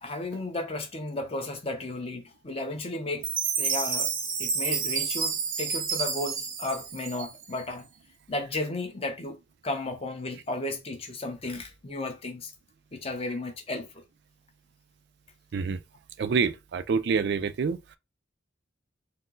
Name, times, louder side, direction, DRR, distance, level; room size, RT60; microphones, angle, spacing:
voice 1, 0.0-3.3 3.6-4.1 4.4-7.9 8.3-9.4 9.6-12.5 12.9-13.9, left 2 dB, 30° left, 0.8 m, -34 dB
Chime, 3.2-7.6, right 6 dB, 85° right, 0.8 m, -29 dB
voice 2, 16.2-18.0, right 5 dB, 60° right, 0.3 m, -27 dB
4.3 x 2.0 x 3.7 m
head